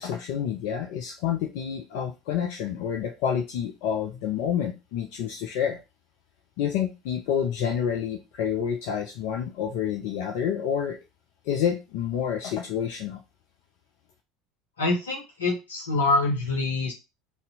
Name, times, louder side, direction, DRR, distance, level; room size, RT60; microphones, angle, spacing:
voice 1, 0.0-5.8 6.6-11.0 11.5-13.2, left 8 dB, 60° left, 1 dB, 0.4 m, -28 dB
voice 2, 14.8-16.9, left 2 dB, 80° left, -1 dB, 0.8 m, -25 dB
2.7 x 2.0 x 4.0 m, 0.26 s
figure-of-eight pair, 70°, 0 cm